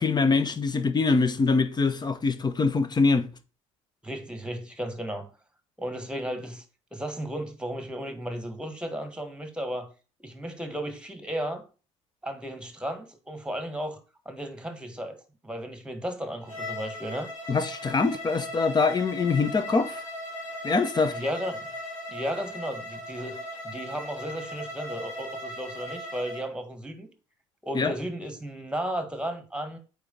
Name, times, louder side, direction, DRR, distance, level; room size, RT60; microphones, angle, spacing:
voice 1, 0.0-3.3 17.5-20.0 20.6-21.2 27.7-27.9, left 4 dB, 25° left, 0.9 m, -24 dB
voice 2, 4.0-5.3 5.8-6.6 6.9-9.9 10.2-11.7 12.2-14.0 14.2-15.2 15.4-17.3 21.1-21.7 22.1-27.1 27.6-29.8, equal, 5° right, 1.6 m, -34 dB
Bowed string instrument, 16.4-26.5, left 1 dB, 85° left, 1.5 m, -38 dB
8.5 x 3.6 x 3.9 m
hypercardioid pair, 60°, 17 cm